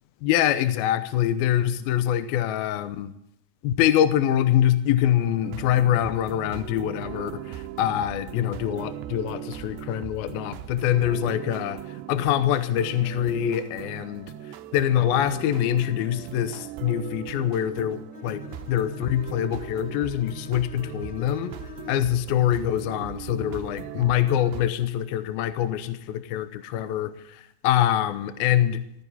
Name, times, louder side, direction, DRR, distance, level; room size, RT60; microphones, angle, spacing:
voice 1, 0.2-3.1 3.6-18.4 18.7-21.5 21.9-28.8, left 11 dB, 75° left, 10 dB, 2.4 m, -24 dB
sound 1, 5.4-24.7, right 11 dB, 85° right, 2.8 m, -39 dB
Bowed string instrument, 18.1-22.2, left 9 dB, 45° left, 1.0 m, -44 dB
17.0 x 15.0 x 4.2 m, 0.76 s
omnidirectional pair, 5.0 m